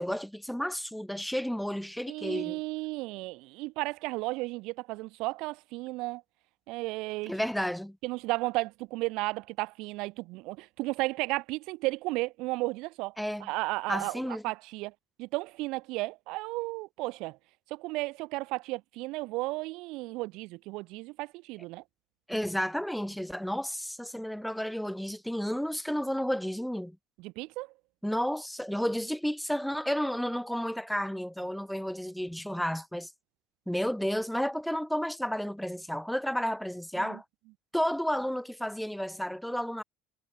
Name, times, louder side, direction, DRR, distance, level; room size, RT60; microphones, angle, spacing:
voice 1, 0.0-2.6 7.3-8.0 13.2-13.5 13.9-14.4 22.3-27.0 28.0-33.1 33.7-37.2 37.7-39.8, equal, ahead, 1.4 m, -32 dB
voice 2, 2.1-6.2 6.7-7.3 8.0-13.1 13.4-14.9 15.2-17.4 17.7-21.8 27.2-27.7 37.0-37.2, right 22 dB, 60° right, 4.7 m, -34 dB
cardioid pair, 140°, 0 cm